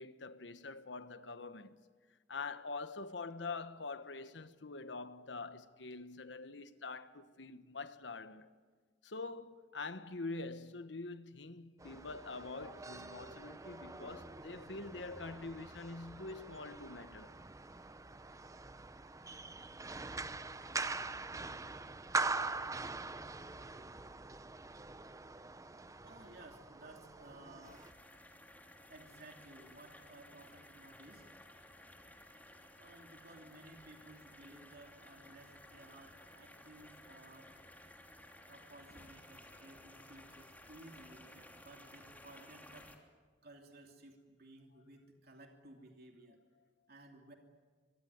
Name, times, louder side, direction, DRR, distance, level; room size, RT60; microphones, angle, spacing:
voice 1, 0.0-1.8 2.3-8.5 9.0-17.3, left 3 dB, 75° left, 1.3 m, -45 dB
sound 1, 11.8-27.9, right 3 dB, 20° right, 0.8 m, -43 dB
voice 2, 26.0-27.9 28.9-31.3 32.8-37.5 38.5-42.9 43.4-46.4 46.9-47.3, right 2 dB, 60° right, 2.7 m, -57 dB
sound 2, 27.6-43.0, left 1 dB, 10° left, 3.2 m, -57 dB
25.0 x 23.5 x 9.5 m
head